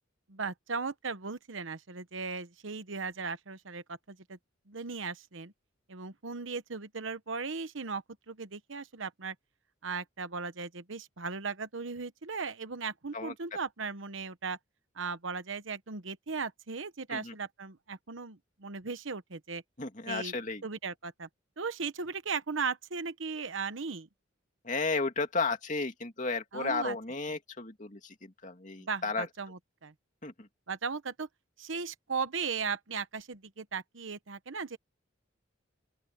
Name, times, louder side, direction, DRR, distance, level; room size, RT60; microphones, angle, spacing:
voice 1, 0.3-4.4 4.7-5.5 5.9-9.3 9.8-14.6 15.0-19.6 20.1-20.3 20.6-21.3 21.6-24.1 26.5-26.9 28.8-29.9 30.7-31.3 31.6-34.8, right 5 dB, 75° right, 1.1 m, -37 dB
voice 2, 13.1-13.6 17.1-17.3 19.8-20.6 24.6-29.3 30.2-30.5, left 3 dB, 40° left, 2.7 m, -34 dB
open air
head